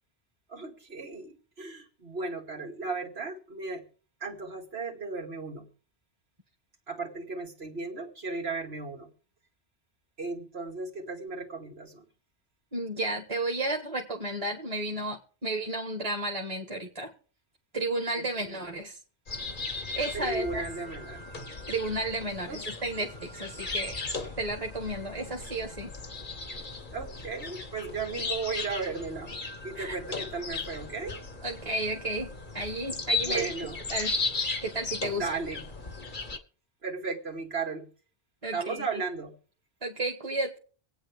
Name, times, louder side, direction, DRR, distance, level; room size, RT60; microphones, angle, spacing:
voice 1, 0.5-3.8 4.2-5.7 6.9-9.1 10.2-12.0 18.2-18.3 18.6-18.7 20.1-21.2 22.5-22.6 26.9-29.3 29.6-31.2 32.9-33.8 35.2-35.7 36.8-37.9 38.5-39.3, right 4 dB, 85° right, 1 dB, 2.7 m, -35 dB
voice 2, 12.7-17.1 17.7-19.0 19.9-20.6 21.7-24.0 24.4-25.9 29.8-30.0 31.4-33.5 33.9-34.2 34.6-35.3 38.4-39.0 39.8-40.6, right 2 dB, 35° right, 1 dB, 1.7 m, -32 dB
sound 1, 19.3-36.4, left 3 dB, 50° left, 1.5 m, -36 dB
25.0 x 9.0 x 3.5 m, 0.41 s
omnidirectional pair, 1.0 m